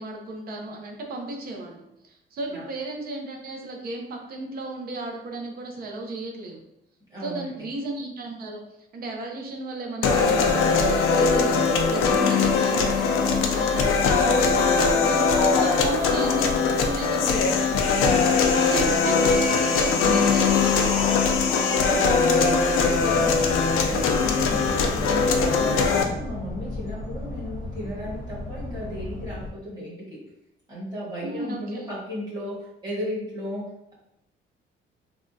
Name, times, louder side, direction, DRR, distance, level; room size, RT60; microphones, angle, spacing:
voice 1, 0.0-6.6 7.2-17.5 18.5-21.1 22.3-23.3 31.2-31.8, right 2 dB, 45° right, 2 dB, 0.6 m, -35 dB
voice 2, 7.1-7.7 22.8-23.4 23.8-30.2 30.7-33.9, equal, 20° right, -8 dB, 1.3 m, -35 dB
sound 1, 10.0-26.0, left 4 dB, 90° left, 0.4 m, -21 dB
sound 2, 13.5-15.0 15.3-17.5 19.3-22.3, left 2 dB, 20° left, 0.4 m, -36 dB
sound 3, 22.9-29.5, left 2 dB, 45° left, 0.7 m, -35 dB
3.4 x 2.2 x 2.6 m, 0.82 s
cardioid pair, 165°, 21 cm